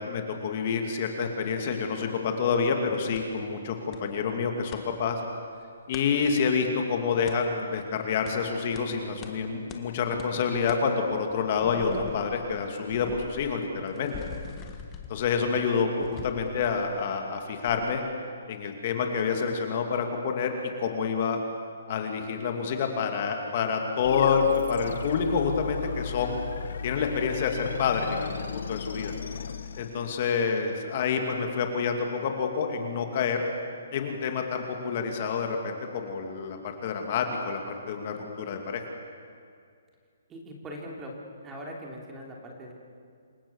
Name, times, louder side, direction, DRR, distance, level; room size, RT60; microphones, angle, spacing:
voice 1, 0.0-5.2 5.9-14.1 15.1-18.0 18.5-20.5 20.8-21.4 21.9-26.4 26.8-29.1 29.8-33.4 33.9-38.8, left 5 dB, 35° left, 4 dB, 2.6 m, -28 dB
sound 1, 3.2-3.3 3.9-4.0 4.3-4.8 5.9-6.1 7.3-7.4 8.3-8.4 8.8-8.9 9.2-9.3 9.7-9.8 10.2-10.3 10.7-10.8 11.3-17.3 17.7-17.9, left 6 dB, 15° left, 1.6 m, -43 dB
sound 2, 24.0-30.5, left 7 dB, 60° left, 1.5 m, -36 dB
voice 2, 40.3-41.1 41.4-42.7, equal, 10° right, -1 dB, 3.1 m, -41 dB
28.0 x 24.0 x 7.2 m, 2.3 s
hypercardioid pair, 175°, 0 cm